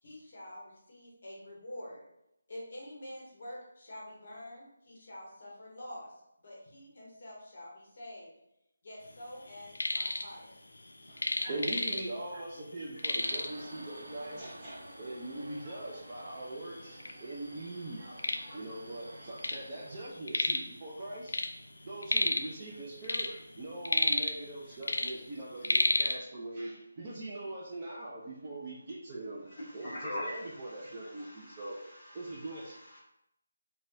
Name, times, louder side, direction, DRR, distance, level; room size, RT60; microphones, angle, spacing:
voice 1, 0.0-2.0 2.5-6.1 6.4-8.3 8.8-10.6, left 1 dB, 35° left, 0.8 m, -47 dB
sound 1, 9.5-10.3 10.6-12.3 12.6-12.7 13.0-13.6 14.4-14.5 15.1-15.2 15.9-16.0 16.3-17.1 17.6-19.7 19.9-20.7 21.0-22.6 22.9-24.5 24.8-26.2, left 2 dB, 70° left, 0.4 m, -31 dB
voice 2, 11.1-21.4 21.8-29.9 30.2-31.8 32.1-32.8, right 2 dB, 15° right, 0.3 m, -42 dB
Subway metro underground, 13.2-20.1, right 1 dB, 70° right, 0.6 m, -50 dB
voice 3, 29.4-33.0, left 1 dB, 10° left, 1.0 m, -43 dB
4.1 x 2.2 x 2.5 m
figure-of-eight pair, 180°, 0 cm